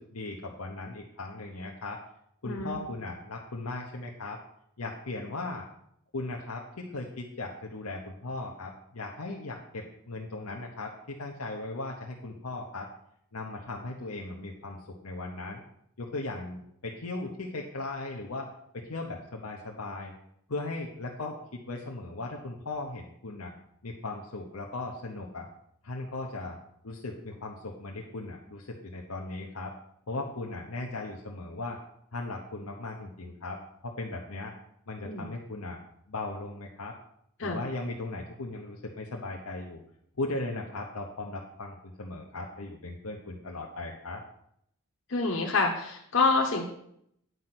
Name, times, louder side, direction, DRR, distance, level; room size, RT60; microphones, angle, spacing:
voice 1, 0.0-2.0 2.4-4.4 4.8-5.7 6.1-12.9 13.3-14.8 15.0-15.6 16.0-18.5 18.7-20.1 20.5-23.5 23.8-25.5 25.8-26.6 26.8-29.7 30.1-31.8 32.1-34.5 34.9-35.8 36.1-36.9 37.4-39.8 40.2-44.2, left 2 dB, 80° left, -1 dB, 1.0 m, -37 dB
voice 2, 2.4-2.8 35.0-35.3 37.4-37.6 45.1-46.6, left 4 dB, 55° left, 0 dB, 1.1 m, -27 dB
9.4 x 5.5 x 6.0 m, 0.73 s
head